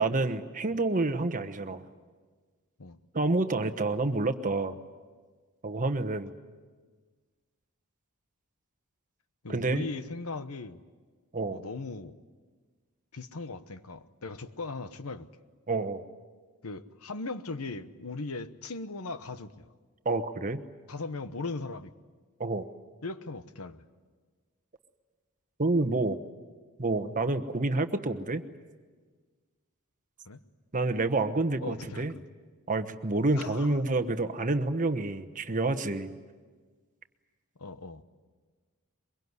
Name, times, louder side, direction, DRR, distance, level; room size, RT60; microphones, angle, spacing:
voice 1, 0.0-1.8 3.1-4.8 5.6-6.3 9.5-9.9 11.3-11.6 15.7-16.0 20.0-20.6 22.4-22.7 25.6-26.2 26.8-28.4 30.7-32.1 32.7-36.1, right 2 dB, 35° right, 9 dB, 1.1 m, -28 dB
voice 2, 9.4-10.8 11.5-12.2 13.1-15.3 16.6-19.7 20.9-21.9 23.0-23.8 30.3-30.4 31.6-32.2 33.3-33.8 37.6-38.0, left 3 dB, 80° left, 12 dB, 1.1 m, -38 dB
23.5 x 22.5 x 9.6 m, 1.5 s
head